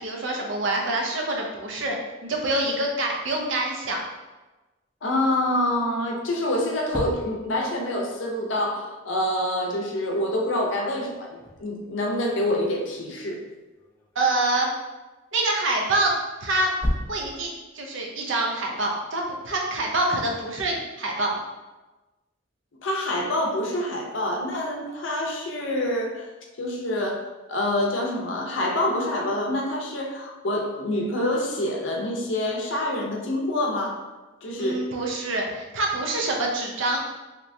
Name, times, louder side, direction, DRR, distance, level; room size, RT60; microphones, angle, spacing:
voice 1, 0.0-2.0 2.2-4.0 14.2-14.7 15.3-16.1 16.4-16.7 17.1-21.4 34.6-37.0, right 2 dB, 75° right, 0 dB, 0.6 m, -26 dB
voice 2, 5.0-13.4 22.8-26.3 26.6-27.2 27.5-34.0 34.4-34.8, left 1 dB, 75° left, 1 dB, 0.6 m, -26 dB
sound 1, 5.9-6.0 6.4-8.1 11.0-14.6 15.8-18.0, left 1 dB, 10° left, 0.4 m, -35 dB
3.2 x 2.9 x 2.6 m, 1.2 s
head